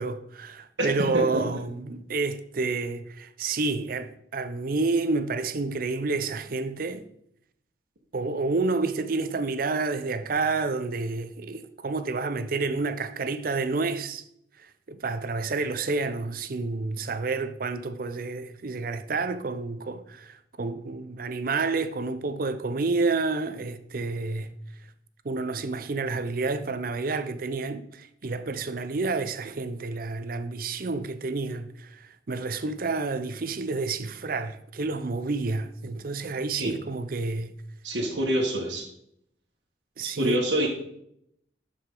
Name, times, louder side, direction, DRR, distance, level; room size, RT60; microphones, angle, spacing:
voice 1, 0.0-7.1 8.1-14.2 14.6-24.5 25.2-37.5 40.0-40.4, right 3 dB, 55° right, 0.6 m, -29 dB
voice 2, 37.8-38.8 40.2-40.7, right 1 dB, 90° right, 1.6 m, -26 dB
12.0 x 5.0 x 3.8 m
head